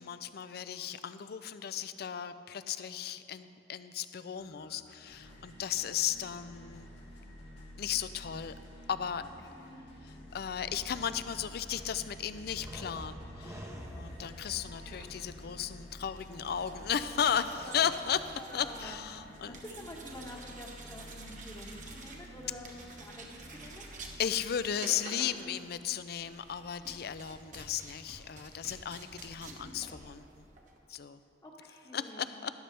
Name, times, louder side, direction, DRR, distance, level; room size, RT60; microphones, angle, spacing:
voice 1, 0.0-6.9 7.8-8.5 8.9-9.2 10.3-13.7 14.0-18.2 18.5-19.6 24.2-30.5 30.9-31.2 31.9-32.5, left 8 dB, 60° left, 13 dB, 0.4 m, -35 dB
sound 1, 4.4-24.2, equal, 75° left, 2.7 m, -51 dB
voice 2, 9.2-9.8 17.4-19.0 19.4-23.9 31.4-32.4, left 1 dB, 20° left, -1 dB, 1.2 m, -48 dB
sound 2, 10.1-18.6, equal, 15° right, 0.8 m, -50 dB
sound 3, 14.8-30.8, right 3 dB, 45° right, 1.1 m, -51 dB
13.0 x 11.5 x 3.3 m, 2.6 s
head